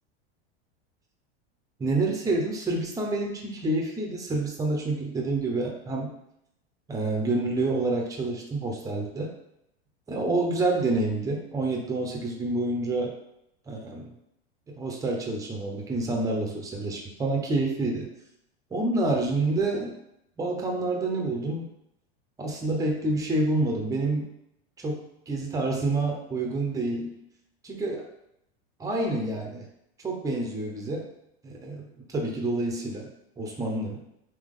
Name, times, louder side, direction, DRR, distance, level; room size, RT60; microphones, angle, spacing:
voice 1, 1.8-6.1 6.9-9.3 10.1-13.1 13.7-14.1 14.8-18.1 18.7-20.0 20.4-21.7 22.4-24.3 24.8-25.0 25.3-27.2 27.6-28.0 28.8-29.7 30.0-31.1 31.4-33.1 33.4-34.0, right 2 dB, 10° right, 0 dB, 0.7 m, -28 dB
3.6 x 2.9 x 3.7 m, 0.79 s
supercardioid pair, 115°, 30 cm